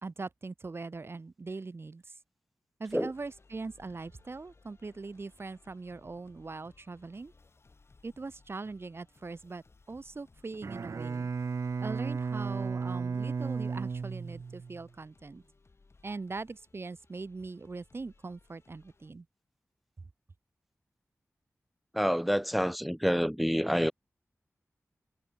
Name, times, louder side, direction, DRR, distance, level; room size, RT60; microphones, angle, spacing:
voice 1, 0.0-2.1 2.8-7.3 8.0-11.3 11.8-15.4 16.0-19.3, right 3 dB, 50° right, 1.4 m, -41 dB
sound 1, 2.9-19.1, left 3 dB, 50° left, 6.9 m, -63 dB
Bowed string instrument, 10.5-14.9, right 5 dB, 70° right, 0.7 m, -34 dB
voice 2, 21.9-23.9, equal, ahead, 1.1 m, -27 dB
wide cardioid pair, 70°, 5 cm